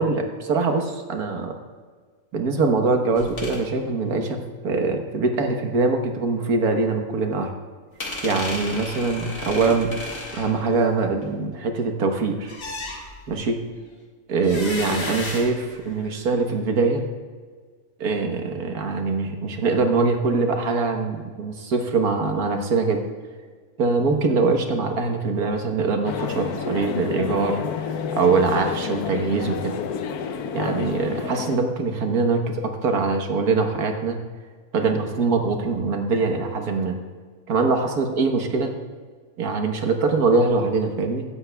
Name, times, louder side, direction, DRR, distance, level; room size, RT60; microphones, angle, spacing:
voice 1, 0.0-1.5 2.3-7.5 8.2-9.9 10.3-12.5 13.3-13.6 14.3-17.0 18.0-23.0 23.8-27.9 28.1-29.8 30.5-34.2 34.7-37.0 37.5-38.7 39.4-41.2, right 4 dB, 80° right, 4 dB, 1.7 m, -23 dB
sound 1, 3.2-3.6 8.0-11.3 12.5-13.4 14.4-16.2, left 2 dB, 65° left, 2.2 m, -34 dB
sound 2, 26.0-31.6, left 6 dB, 80° left, 1.2 m, -29 dB
16.5 x 12.0 x 2.3 m, 1.5 s
omnidirectional pair, 1.6 m